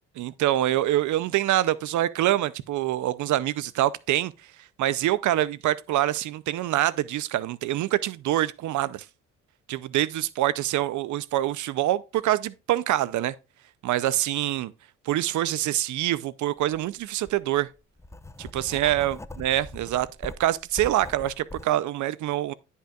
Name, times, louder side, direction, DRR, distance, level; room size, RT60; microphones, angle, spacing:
voice 1, 0.2-4.3 4.8-9.0 9.7-13.3 13.8-14.7 15.1-17.7 18.4-22.5, right 13 dB, 75° right, 0.6 m, -25 dB
Writing, 16.6-16.8 17.2-21.7, left 1 dB, 10° left, 0.7 m, -41 dB
14.5 x 5.6 x 2.4 m
cardioid pair, 90°, 30 cm